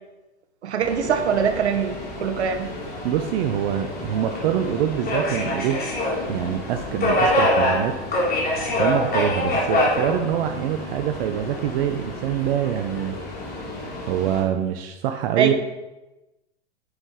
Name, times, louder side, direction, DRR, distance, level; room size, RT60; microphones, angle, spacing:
voice 1, 0.6-2.7 15.4-15.5, right 7 dB, 75° right, 7 dB, 1.5 m, -23 dB
Subway metro underground, 0.8-14.4, left 1 dB, 30° left, 3.5 m, -26 dB
voice 2, 3.0-5.8 6.3-7.9 8.8-13.2 14.0-15.5, right 10 dB, 55° right, 6 dB, 1.0 m, -25 dB
9.8 x 7.7 x 5.0 m, 1.0 s
hypercardioid pair, 105°, 33 cm